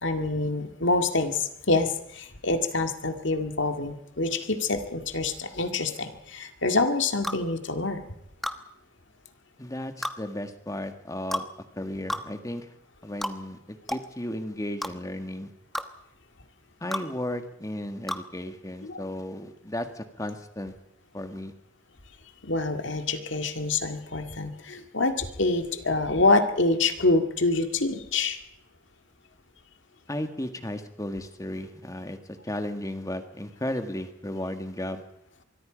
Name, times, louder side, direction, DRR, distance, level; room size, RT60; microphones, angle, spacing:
voice 1, 0.0-8.0 18.9-19.0 22.4-28.4, left 3 dB, 65° left, 7 dB, 2.1 m, -26 dB
sound 1, 7.2-7.4 8.4-8.6 10.0-10.2 11.3-11.5 12.1-12.3 13.2-13.4 13.9-14.1 14.8-14.9 15.7-15.9 16.9-17.1 18.1-18.2, equal, ahead, 1.0 m, -31 dB
voice 2, 9.6-11.5 11.7-12.7 13.0-15.5 16.8-20.7 21.1-21.5 30.1-35.0, left 1 dB, 15° left, 8 dB, 1.7 m, -34 dB
24.5 x 22.5 x 5.2 m, 0.80 s
head